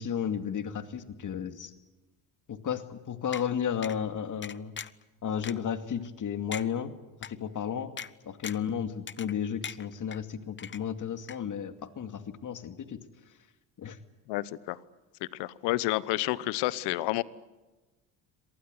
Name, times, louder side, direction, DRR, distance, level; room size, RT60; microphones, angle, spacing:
voice 1, 0.0-1.7 2.5-4.8 5.2-6.9 7.2-7.9 8.2-13.0 13.8-14.0, left 8 dB, 45° left, 9 dB, 2.4 m, -33 dB
sound 1, 3.3-3.4 3.8-4.0 4.4-5.0 5.4-5.5 6.0-6.1 6.5-6.7 7.2-7.3 8.0-8.1 8.4-8.7 9.1-9.4 9.6-10.2 10.6-11.0 11.3-11.4, left 7 dB, 30° left, 0.9 m, -39 dB
voice 2, 14.3-14.8 15.4-17.2, left 18 dB, 80° left, 19 dB, 1.1 m, -29 dB
25.5 x 19.0 x 9.7 m, 1.1 s
supercardioid pair, 80°, 41 cm